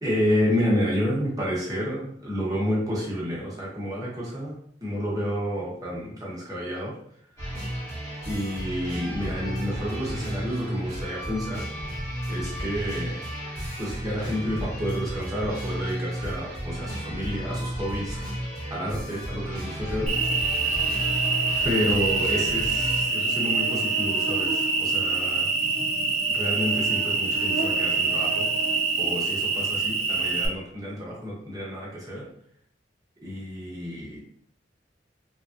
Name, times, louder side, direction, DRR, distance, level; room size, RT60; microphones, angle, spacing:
voice 1, 0.0-4.6 4.8-6.9 8.3-11.7 12.3-13.2 13.8-20.1 21.6-25.5 26.3-28.5 29.0-32.3 33.2-34.1, equal, 20° right, -5 dB, 1.0 m, -30 dB
sound 1, 7.4-23.0, equal, 15° left, 1.2 m, -33 dB
Cricket, 20.1-30.5, right 4 dB, 35° right, 0.6 m, -25 dB
3.2 x 2.3 x 2.6 m, 0.65 s
head